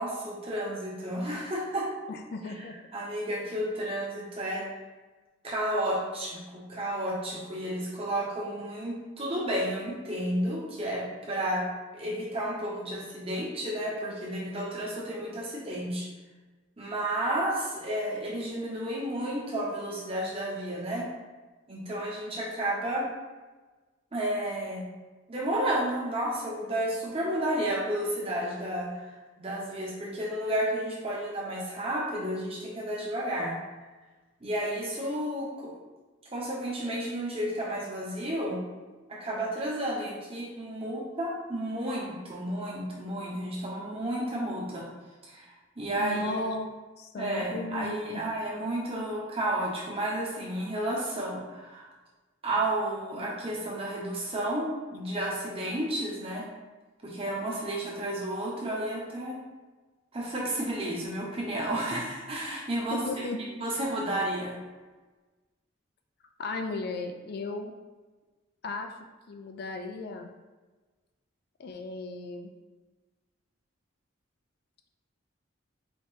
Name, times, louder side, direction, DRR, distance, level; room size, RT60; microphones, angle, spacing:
voice 1, 0.0-1.9 2.4-2.6 2.9-4.7 5.4-11.7 11.9-16.1 16.8-21.1 21.7-23.1 24.1-24.8 25.3-29.1 29.4-33.6 34.4-35.7 36.3-38.6 39.1-44.9 45.3-45.5 45.8-46.3 47.2-51.9 52.4-56.4 57.0-59.4 60.1-63.3 63.6-64.6, right 1 dB, 30° right, -4 dB, 0.9 m, -32 dB
voice 2, 2.1-2.7 46.0-48.2 62.9-63.6 66.4-67.7 68.6-68.9 69.3-70.3 71.6-72.5, left 2 dB, 50° left, 5 dB, 0.3 m, -35 dB
4.4 x 2.9 x 3.1 m, 1.3 s
head